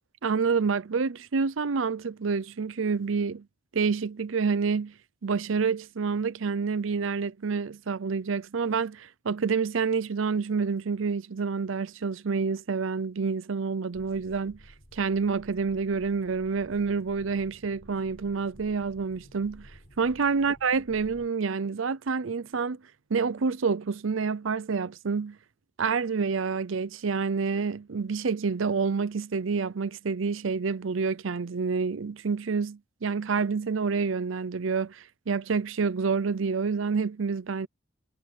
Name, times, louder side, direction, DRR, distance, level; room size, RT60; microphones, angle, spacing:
voice 1, 0.2-3.4 3.7-4.9 5.2-14.6 14.9-19.7 20.0-22.8 23.1-25.4 25.8-37.7, right 5 dB, 75° right, 0.6 m, -28 dB
sound 1, 13.9-21.3, equal, 45° left, 7.7 m, -53 dB
head